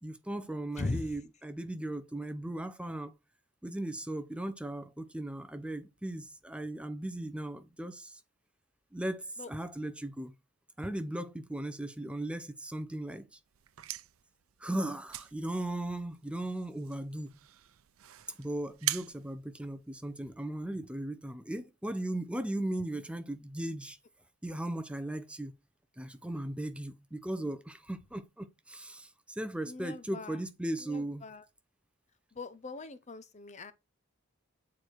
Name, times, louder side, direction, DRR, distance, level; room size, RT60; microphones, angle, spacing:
voice 1, 0.0-3.1 3.6-8.2 8.9-10.3 10.8-13.4 14.6-17.3 18.4-24.0 24.4-25.5 26.0-31.3, right 1 dB, 5° right, 0.7 m, -37 dB
voice 2, 0.8-1.1 9.4-9.5 29.6-30.4 30.8-31.4 32.3-33.7, left 2 dB, 35° left, 0.7 m, -39 dB
sound 1, 13.5-20.3, right 15 dB, 80° right, 0.6 m, -42 dB
8.5 x 4.6 x 4.6 m
head